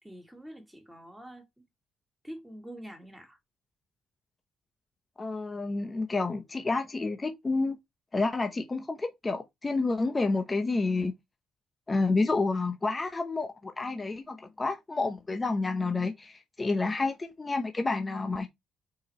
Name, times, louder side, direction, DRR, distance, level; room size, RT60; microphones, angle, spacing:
voice 1, 0.0-1.4 2.2-3.4, equal, 5° right, 2.6 m, -45 dB
voice 2, 5.2-7.8 8.1-11.1 11.9-18.5, left 3 dB, 25° left, 0.9 m, -29 dB
4.9 x 4.6 x 4.5 m
cardioid pair, 90°, 0 cm